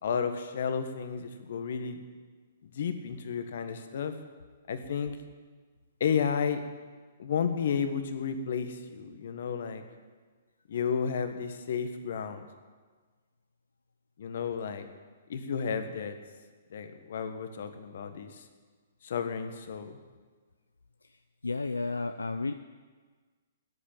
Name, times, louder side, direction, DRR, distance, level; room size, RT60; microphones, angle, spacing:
voice 1, 0.0-2.0 2.6-4.1 4.7-5.2 6.0-6.6 7.2-9.8 10.7-12.5 14.2-14.9 15.3-16.2 16.7-18.4 19.0-20.0, left 6 dB, 60° left, 8 dB, 1.5 m, -32 dB
voice 2, 21.4-22.5, left 3 dB, 85° left, 9 dB, 0.5 m, -32 dB
14.0 x 10.0 x 7.5 m, 1.4 s
figure-of-eight pair, 125°, 0 cm